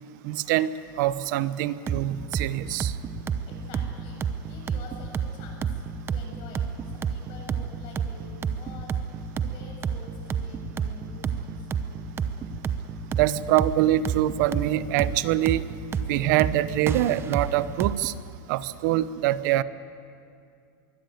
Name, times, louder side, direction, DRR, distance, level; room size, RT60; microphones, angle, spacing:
voice 1, 0.2-0.7 1.0-2.9 13.2-15.6 16.1-18.1 18.5-19.6, right 14 dB, 60° right, 16 dB, 0.8 m, -24 dB
sound 1, 1.9-18.1, right 7 dB, 20° right, 0.9 m, -30 dB
voice 2, 3.5-5.8 6.1-12.0, left 3 dB, 50° left, 0 dB, 7.9 m, -48 dB
23.0 x 16.5 x 9.2 m, 2.4 s
supercardioid pair, 145°, 11 cm